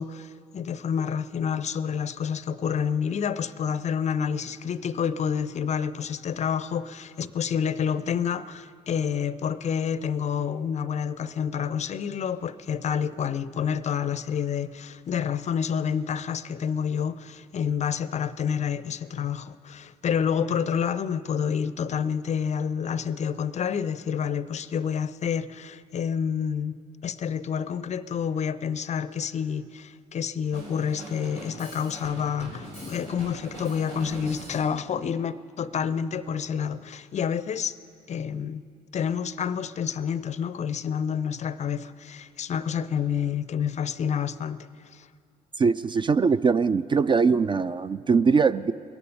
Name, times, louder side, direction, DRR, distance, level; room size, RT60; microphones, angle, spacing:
voice 1, 0.0-26.8 27.0-37.8 38.1-38.6 38.9-44.6 44.9-45.1, left 7 dB, 35° left, 0.5 m, -28 dB
Drum kit, 30.5-34.7, right 1 dB, 80° right, 4.8 m, -41 dB
voice 2, 45.6-48.7, right 5 dB, 25° right, 0.3 m, -22 dB
21.5 x 10.5 x 5.3 m
figure-of-eight pair, 50°, 20 cm